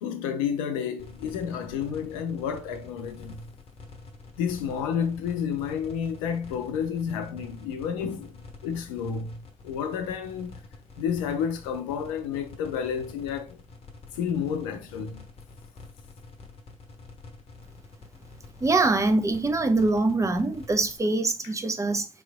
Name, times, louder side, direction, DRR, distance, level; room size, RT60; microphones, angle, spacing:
voice 1, 0.0-3.4 4.4-9.4 9.6-10.6 11.0-13.6 14.2-15.2, left 7 dB, 75° left, 0.6 m, -30 dB
sound 1, 1.0-21.0, left 3 dB, 35° left, 0.9 m, -47 dB
voice 2, 18.6-22.1, right 2 dB, 20° right, 0.7 m, -24 dB
3.7 x 3.2 x 2.3 m
figure-of-eight pair, 45°, 17 cm